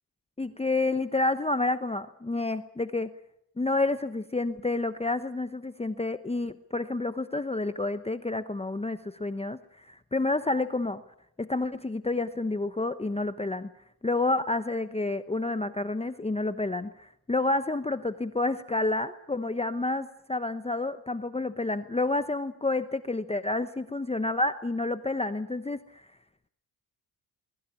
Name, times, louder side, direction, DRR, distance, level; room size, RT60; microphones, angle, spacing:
voice 1, 0.4-3.1 3.6-11.0 11.4-13.7 14.0-26.1, left 2 dB, 15° left, 11 dB, 0.9 m, -29 dB
22.5 x 21.5 x 8.6 m, 0.74 s
cardioid pair, 90°, 42 cm